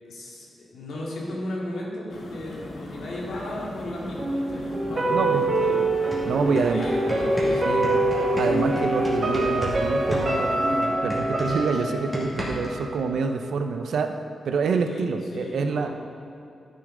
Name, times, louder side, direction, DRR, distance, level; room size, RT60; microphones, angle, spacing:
voice 1, 0.0-7.7 14.8-15.9, left 1 dB, 80° left, -4 dB, 2.2 m, -35 dB
sound 1, 2.1-10.9, left 2 dB, 55° left, 1.3 m, -39 dB
sound 2, 4.2-13.2 13.5-13.6, right 1 dB, 40° right, 1.6 m, -25 dB
voice 2, 5.1-5.5 6.3-6.9 7.6-8.0 8.4-14.1 14.4-15.9, right 5 dB, 80° right, 6 dB, 0.7 m, -27 dB
sound 3, 5.6-5.7 5.9-9.8 10.1-12.8, equal, ahead, 2.3 m, -34 dB
13.0 x 6.8 x 3.8 m, 2.6 s
wide cardioid pair, 135°, 0 cm